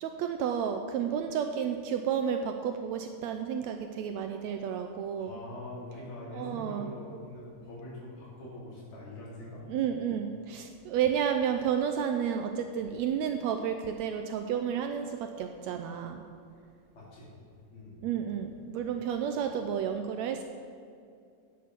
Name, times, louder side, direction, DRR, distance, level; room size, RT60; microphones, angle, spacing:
voice 1, 0.0-5.3 6.3-6.9 9.7-16.2 18.0-20.4, right 8 dB, 80° right, 6 dB, 1.6 m, -31 dB
voice 2, 5.2-9.6 16.9-17.3 17.7-18.0, left 1 dB, 85° left, -7 dB, 4.6 m, -43 dB
10.0 x 7.2 x 7.6 m, 2.4 s
omnidirectional pair, 3.5 m